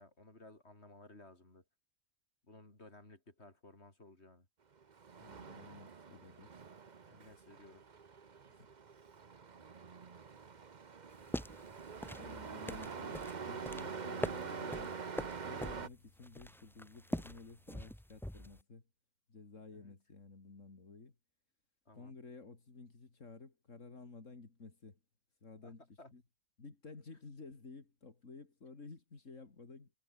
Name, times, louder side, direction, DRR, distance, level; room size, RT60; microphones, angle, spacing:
voice 1, 0.0-1.6 2.4-4.5 7.1-7.8 13.9-14.3 19.7-19.9 21.9-22.1 25.6-25.7 26.0-26.1, left 2 dB, 60° left, 5.4 m, -57 dB
Truck, 4.8-15.9, right 5 dB, 40° right, 1.1 m, -46 dB
voice 2, 5.2-6.6 8.5-8.7 12.2-15.0 15.4-18.8 19.3-21.1 21.9-25.0 25.4-26.2 26.6-29.9, left 3 dB, 85° left, 3.3 m, -53 dB
sound 1, 11.1-18.6, equal, 5° left, 0.3 m, -44 dB
omnidirectional pair, 1.3 m